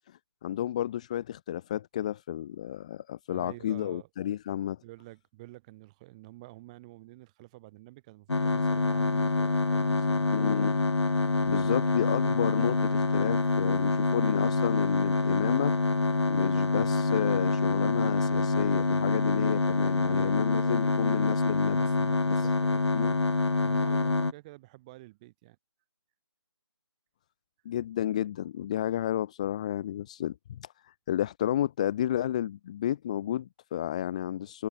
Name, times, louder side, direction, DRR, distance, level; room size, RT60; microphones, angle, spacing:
voice 1, 0.1-4.8 10.3-10.8 11.5-15.8 16.3-21.8 22.4-22.5 22.9-23.2 27.6-34.7, left 11 dB, 15° left, 0.9 m, -32 dB
voice 2, 3.3-4.1 4.8-10.5 19.3-19.6 20.1-20.4 21.7-22.8 23.6-25.6, right 20 dB, 15° right, 7.1 m, -49 dB
sound 1, 8.3-24.3, left 3 dB, 75° left, 1.1 m, -26 dB
figure-of-eight pair, 165°, 14 cm